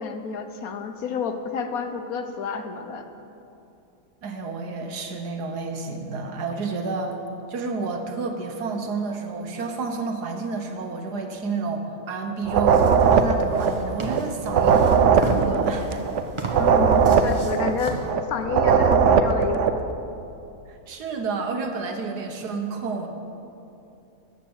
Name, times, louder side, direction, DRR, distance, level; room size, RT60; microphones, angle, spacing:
voice 1, 0.0-3.0 16.6-20.0, left 5 dB, 65° left, 7 dB, 1.3 m, -30 dB
voice 2, 4.2-7.2 7.5-16.0 20.7-23.1, right 4 dB, 85° right, 4 dB, 1.8 m, -30 dB
sound 1, 12.5-19.8, right 6 dB, 60° right, 0.9 m, -19 dB
sound 2, 12.7-18.1, right 2 dB, 20° right, 1.2 m, -34 dB
14.0 x 9.0 x 7.2 m, 2.7 s
omnidirectional pair, 1.7 m